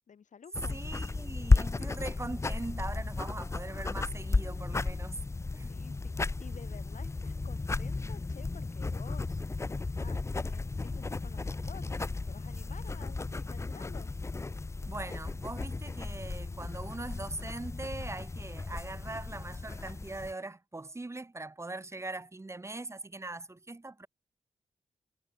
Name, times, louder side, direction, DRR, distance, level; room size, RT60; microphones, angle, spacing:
voice 1, 0.1-0.9 5.7-9.4 9.9-14.1, left 7 dB, 65° left, 6.4 m, -52 dB
sound 1, 0.5-20.3, left 3 dB, 20° left, 0.6 m, -34 dB
voice 2, 0.7-5.2 5.5-5.8 14.9-24.1, right 2 dB, 20° right, 3.6 m, -41 dB
wide cardioid pair, 120°, 13 cm